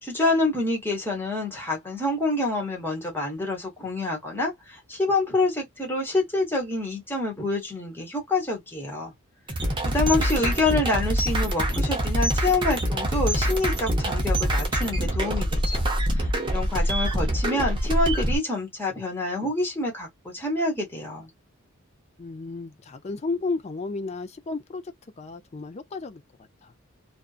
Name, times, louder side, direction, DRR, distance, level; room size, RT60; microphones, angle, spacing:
voice 1, 0.0-9.1 9.8-15.8 16.1-21.3, left 2 dB, 10° left, 1.1 m, -27 dB
sound 1, 9.5-18.4, equal, 20° right, 0.7 m, -25 dB
voice 2, 22.2-26.7, left 3 dB, 30° left, 0.4 m, -33 dB
2.5 x 2.3 x 2.3 m
head